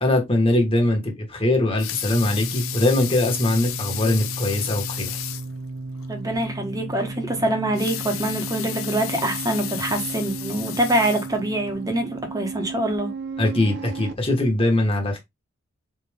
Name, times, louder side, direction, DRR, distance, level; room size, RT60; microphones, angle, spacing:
voice 1, 0.0-5.1 13.4-15.2, left 1 dB, 25° left, 1.4 m, -21 dB
sound 1, 1.3-14.1, right 3 dB, 55° right, 0.6 m, -34 dB
Water tap faucet / Sink (filling or washing) / Liquid, 1.6-5.5 6.0-6.1 6.4-6.5 7.6-11.8 12.3-12.4, left 13 dB, 80° left, 0.5 m, -33 dB
voice 2, 6.1-13.1, right 1 dB, 15° right, 1.1 m, -25 dB
4.1 x 3.4 x 3.4 m
head